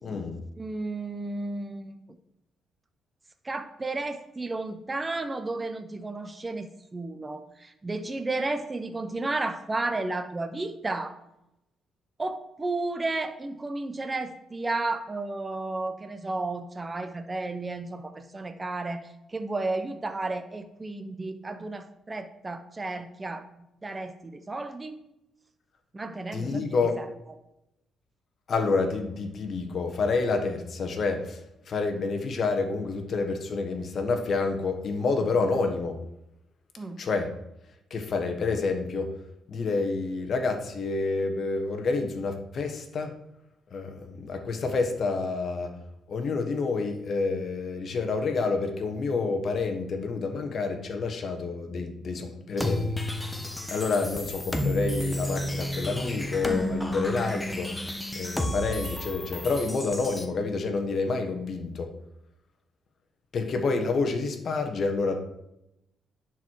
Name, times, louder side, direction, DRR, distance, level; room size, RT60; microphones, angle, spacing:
voice 1, 0.0-0.4 26.3-27.0 28.5-36.0 37.0-37.3 37.9-39.1 39.5-43.1 43.7-45.7 46.1-52.9 53.7-57.7 58.1-61.9 63.3-65.2, left 4 dB, 55° left, 5 dB, 1.3 m, -28 dB
voice 2, 0.6-2.0 3.4-11.2 12.2-23.5 23.8-25.0 25.9-26.7 27.0-27.1 36.8-37.0, right 2 dB, 20° right, 8 dB, 0.7 m, -33 dB
sound 1, 52.6-60.2, left 1 dB, 10° left, 1.1 m, -31 dB
10.0 x 4.7 x 4.6 m, 0.84 s
cardioid pair, 90°, 0 cm